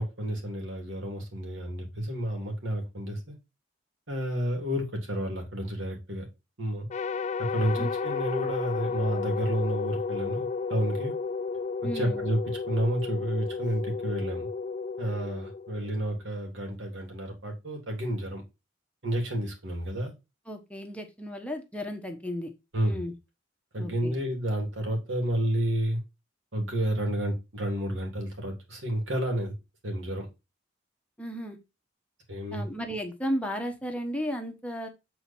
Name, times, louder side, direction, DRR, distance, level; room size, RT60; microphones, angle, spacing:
voice 1, 0.0-3.3 4.1-6.2 6.6-6.9 7.5-11.1 11.9-12.4 12.7-14.5 15.0-18.4 19.0-20.1 22.7-23.0 23.7-26.0 26.5-29.5 29.8-30.3 32.3-32.6, equal, 85° right, 3.2 m, -30 dB
sound 1, 6.9-16.2, left 5 dB, 40° left, 0.4 m, -33 dB
voice 2, 11.8-12.2 20.5-22.5 22.8-23.1 23.8-24.1 31.2-31.6 32.5-34.9, equal, 5° left, 1.3 m, -34 dB
8.0 x 4.5 x 4.5 m
head